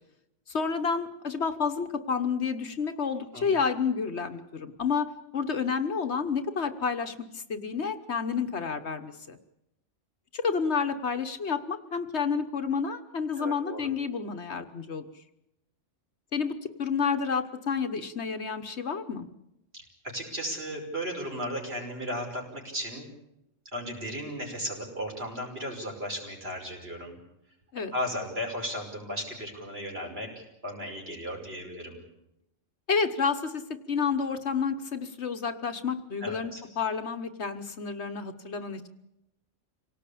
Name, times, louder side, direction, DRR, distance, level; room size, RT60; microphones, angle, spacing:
voice 1, 0.5-9.4 10.3-15.0 16.3-19.3 27.7-27.9 32.9-38.9, left 5 dB, 60° left, 8 dB, 1.5 m, -30 dB
voice 2, 13.4-13.9 19.7-19.8 20.1-23.1 23.7-27.2 27.9-30.3 30.6-32.0 36.2-36.6, equal, 50° right, 0 dB, 5.8 m, -35 dB
26.5 x 18.0 x 8.5 m, 0.89 s
omnidirectional pair, 1.3 m